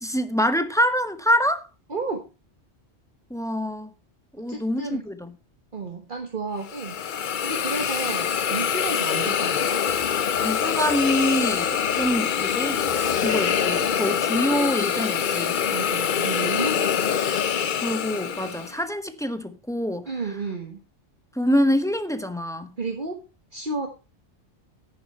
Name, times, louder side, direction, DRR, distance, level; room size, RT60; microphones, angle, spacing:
voice 1, 0.0-1.7 3.3-3.9 4.4-5.3 10.4-12.8 13.2-15.6 17.8-20.1 21.3-22.7, equal, 5° left, 1.0 m, -25 dB
voice 2, 1.9-2.2 4.5-5.0 5.7-9.8 15.7-17.1 20.1-20.8 22.8-23.2 23.5-23.9, right 3 dB, 45° right, 1.6 m, -32 dB
Hiss, 6.6-18.8, left 8 dB, 50° left, 0.7 m, -25 dB
sound 1, 9.9-14.1, right 2 dB, 85° right, 3.6 m, -48 dB
10.5 x 10.5 x 4.3 m
omnidirectional pair, 1.2 m